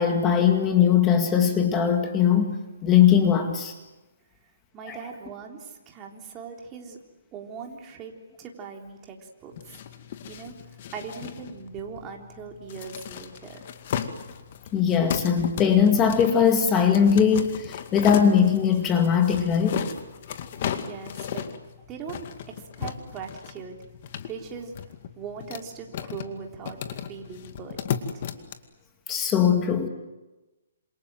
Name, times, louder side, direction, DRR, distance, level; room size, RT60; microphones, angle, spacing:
voice 1, 0.0-3.7 4.9-5.0 14.7-19.8 29.1-29.9, left 8 dB, 15° left, 5 dB, 2.0 m, -20 dB
voice 2, 4.7-7.0 7.3-8.1 8.4-9.8 10.3-10.5 10.9-13.7 20.7-21.5 21.9-23.8 24.3-28.2, right 6 dB, 15° right, 1 dB, 3.6 m, -40 dB
sound 1, 9.5-28.5, left 8 dB, 40° left, 2.2 m, -36 dB
27.5 x 27.5 x 7.6 m, 1.1 s
hypercardioid pair, 165°, 0 cm